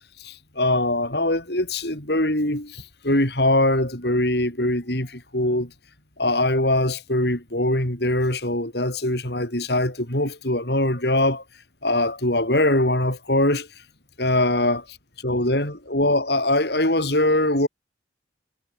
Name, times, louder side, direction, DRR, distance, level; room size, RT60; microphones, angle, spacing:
voice 1, 0.2-5.7 6.2-11.4 11.8-13.7 14.2-15.0 15.2-17.7, left 1 dB, 60° left, 6.3 m, -22 dB
head